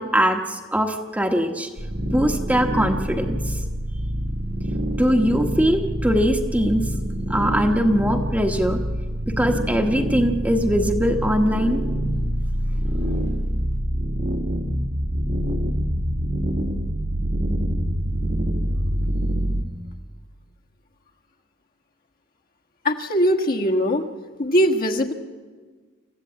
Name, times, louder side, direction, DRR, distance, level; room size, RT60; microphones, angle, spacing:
voice 1, 0.0-1.7 2.0-3.6 5.0-6.9 7.3-8.8 9.4-11.8 13.0-13.1, equal, 5° right, 4 dB, 1.2 m, -21 dB
sound 1, 1.8-19.6, equal, 60° right, 1.8 m, -25 dB
voice 2, 22.8-24.1 24.4-25.1, equal, 45° left, 2 dB, 1.5 m, -20 dB
27.0 x 14.5 x 8.7 m, 1.4 s
head